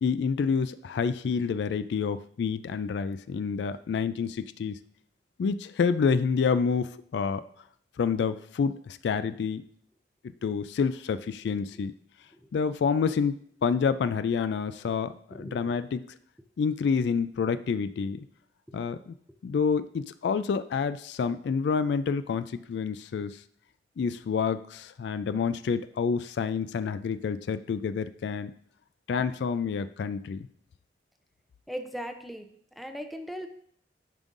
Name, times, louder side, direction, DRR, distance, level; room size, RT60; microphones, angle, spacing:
voice 1, 0.0-4.8 5.4-7.4 8.0-9.6 10.4-11.9 12.5-16.2 16.6-18.2 18.7-19.1 19.4-23.4 24.0-28.5 29.1-30.5, left 5 dB, 65° left, 13 dB, 0.3 m, -28 dB
voice 2, 15.3-15.7 31.7-32.5 32.8-33.5, equal, ahead, 6 dB, 0.5 m, -38 dB
11.0 x 5.3 x 2.5 m, 0.62 s
head